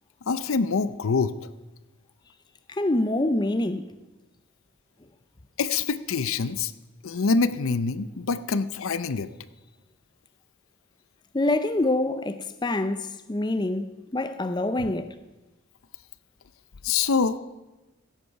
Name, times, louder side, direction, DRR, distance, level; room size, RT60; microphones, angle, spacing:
voice 1, 0.3-1.4 5.6-6.7 7.0-9.3 16.8-17.4, left 4 dB, 75° left, 0.6 m, -25 dB
voice 2, 2.7-3.9 11.3-15.1, left 2 dB, 20° left, 0.5 m, -26 dB
16.0 x 8.3 x 5.8 m
head